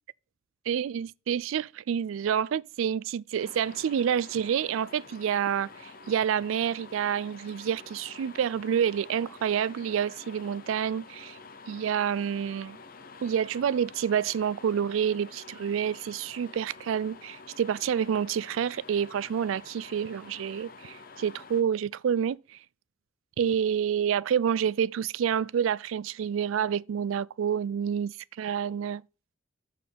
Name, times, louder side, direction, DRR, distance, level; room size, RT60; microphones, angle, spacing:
voice 1, 0.7-11.4 11.7-12.8 13.2-22.4 23.4-29.0, right 8 dB, 85° right, 0.3 m, -28 dB
sound 1, 3.4-21.6, left 4 dB, 45° left, 0.8 m, -49 dB
7.3 x 6.8 x 3.4 m
head